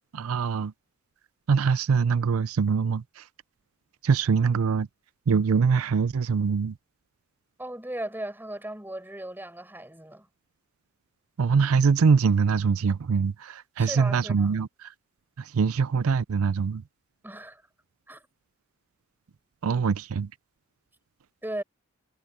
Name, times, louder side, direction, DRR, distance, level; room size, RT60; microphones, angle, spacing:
voice 1, 0.1-0.7 1.5-3.2 4.0-4.9 5.3-6.7 11.4-14.9 15.4-16.8 19.6-20.3, right 5 dB, 90° right, 0.5 m, -23 dB
voice 2, 7.6-10.3 13.8-14.6 17.2-17.7 18.1-18.3 21.4-21.6, right 1 dB, 10° right, 7.0 m, -37 dB
head